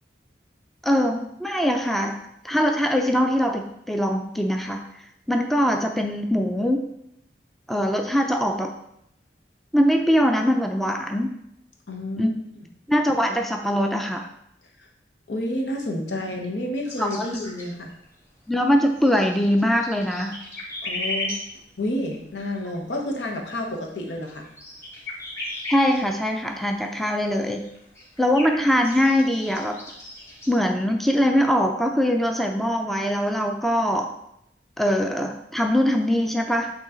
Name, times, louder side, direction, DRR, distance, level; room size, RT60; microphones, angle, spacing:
voice 1, 0.8-2.2 2.4-4.8 5.3-6.8 7.7-8.7 9.7-11.4 12.2-12.3 12.9-14.3 16.1-16.2 17.0-17.3 18.5-20.4 25.7-27.6 28.2-29.8 30.5-34.1 34.8-36.7, equal, ahead, 3 dB, 0.4 m, -22 dB
voice 2, 11.9-12.4 14.8-14.9 15.3-17.9 20.8-21.4 21.8-24.5, left 1 dB, 85° left, 1 dB, 1.1 m, -30 dB
sound 1, 16.9-18.2 18.5-30.6, left 2 dB, 15° left, 1.5 m, -36 dB
8.2 x 3.1 x 3.8 m, 0.78 s
head